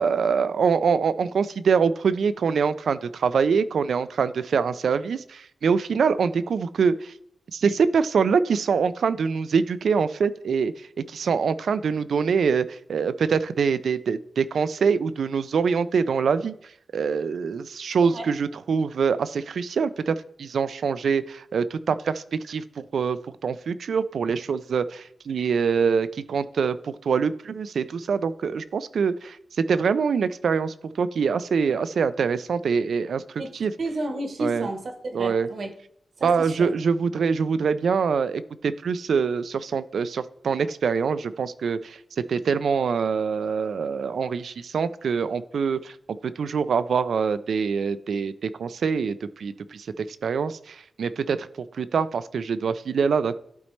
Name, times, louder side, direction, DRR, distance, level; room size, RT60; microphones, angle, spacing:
voice 1, 0.0-7.1 7.5-16.5 16.9-33.2 33.5-33.7 34.4-34.7 35.1-35.5 36.2-51.5 51.7-53.4, right 6 dB, 85° right, 0.3 m, -24 dB
voice 2, 33.8-35.7 36.2-36.7, right 2 dB, 55° right, 1.0 m, -32 dB
12.0 x 4.1 x 3.2 m
wide cardioid pair, 105°, 0 cm